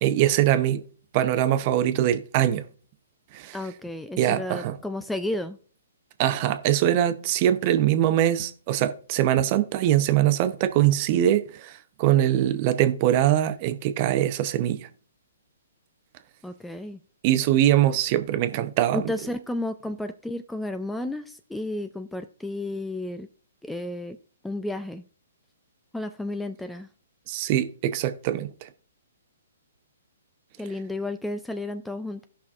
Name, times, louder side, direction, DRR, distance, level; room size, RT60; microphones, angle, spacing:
voice 1, 0.0-0.8 1.1-2.6 3.3-3.6 4.2-4.8 6.2-14.9 17.2-19.1 27.3-28.7, right 12 dB, 40° right, 0.7 m, -22 dB
voice 2, 3.5-5.6 16.4-17.0 18.9-23.3 23.6-24.2 24.4-25.0 25.9-26.9 30.6-32.2, left 1 dB, 5° left, 0.3 m, -32 dB
16.5 x 5.7 x 2.4 m
hypercardioid pair, 140°, 0 cm